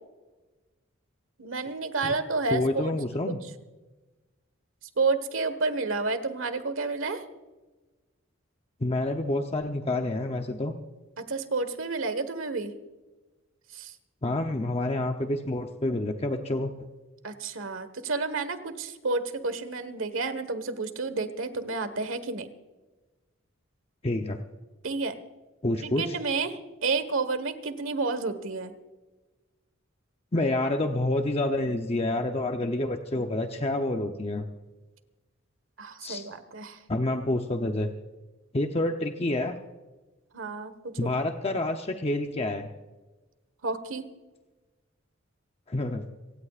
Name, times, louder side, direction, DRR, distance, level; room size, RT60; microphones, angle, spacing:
voice 1, 1.4-3.0 3.3-3.4 5.0-7.2 11.2-12.7 13.7-13.9 17.2-22.5 24.8-25.2 25.8-28.7 35.8-36.8 40.3-41.1 43.6-44.0, right 3 dB, 75° right, 11 dB, 1.5 m, -30 dB
voice 2, 2.5-3.4 8.8-10.7 14.2-16.7 24.0-24.4 25.6-26.1 30.3-34.4 36.0-36.2 36.9-37.9 38.5-39.6 41.0-42.7 45.7-46.0, left 2 dB, 30° left, 4 dB, 0.8 m, -28 dB
26.0 x 16.5 x 2.5 m, 1.2 s
head